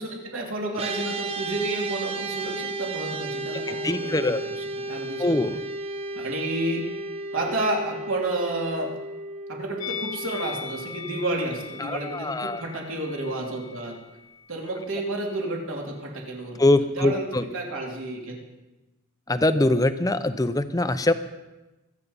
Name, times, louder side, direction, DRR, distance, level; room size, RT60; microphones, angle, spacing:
voice 1, 0.0-5.2 6.1-6.9 7.3-8.9 9.5-14.0 14.5-16.6 17.0-18.4, right 1 dB, 65° right, -1 dB, 3.2 m, -30 dB
sound 1, 0.8-12.2, right 2 dB, 25° right, 0.7 m, -34 dB
voice 2, 3.7-4.4 5.2-5.6 11.8-12.6 16.6-17.4 19.3-21.1, left 2 dB, 15° left, 11 dB, 0.6 m, -23 dB
Musical instrument, 9.8-15.0 15.3-15.5, left 7 dB, 85° left, 1.9 m, -40 dB
23.5 x 8.4 x 5.5 m, 1.1 s
head